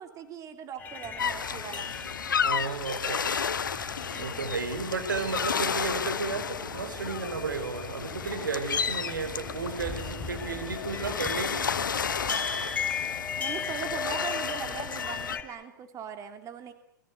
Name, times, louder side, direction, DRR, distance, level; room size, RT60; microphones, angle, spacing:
voice 1, 0.0-1.9 4.1-4.5 13.4-16.7, right 7 dB, 30° right, 7 dB, 3.1 m, -40 dB
sound 1, 0.8-15.4, left 5 dB, 15° left, 4.9 m, -37 dB
sound 2, 1.2-15.4, left 7 dB, 90° left, 1.1 m, -33 dB
voice 2, 2.4-3.3 3.7-11.7, right 4 dB, 90° right, 9 dB, 4.9 m, -33 dB
29.0 x 21.5 x 8.5 m, 0.71 s
hypercardioid pair, 110°, 10 cm